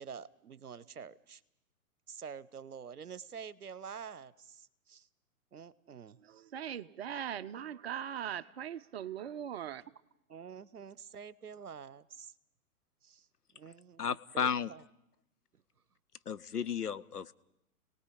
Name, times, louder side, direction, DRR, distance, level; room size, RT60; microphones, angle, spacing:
voice 1, 0.0-1.4 2.1-5.1 5.5-6.2 10.3-12.3 13.0-13.3 13.5-14.0 14.3-14.8, right 7 dB, 80° right, 19 dB, 0.9 m, -47 dB
voice 2, 6.3-9.8, right 9 dB, 45° right, 12 dB, 0.7 m, -40 dB
voice 3, 14.0-14.7 16.3-17.3, left 7 dB, 85° left, 14 dB, 0.8 m, -33 dB
30.0 x 18.5 x 4.9 m, 0.82 s
figure-of-eight pair, 120°, 45 cm